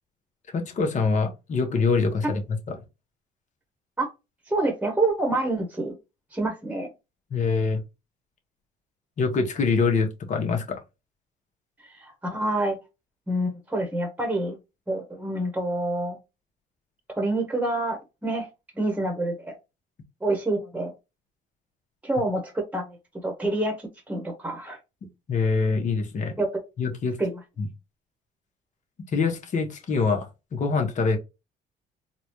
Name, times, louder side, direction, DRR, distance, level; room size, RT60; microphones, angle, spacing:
voice 1, 0.5-2.4 2.7-2.8 7.3-7.8 9.2-10.8 25.3-26.3 26.8-27.2 27.6-27.7 29.1-31.2, left 4 dB, 45° left, 1.2 m, -24 dB
voice 2, 4.5-5.9 6.3-6.9 12.0-12.8 13.3-14.6 14.9-16.2 17.1-18.5 18.8-19.6 20.2-20.9 22.0-22.9 23.2-23.8 24.1-24.8 26.4-26.5 27.2-27.3, right 2 dB, 10° right, 1.2 m, -27 dB
3.9 x 2.4 x 3.1 m
cardioid pair, 110°, 17 cm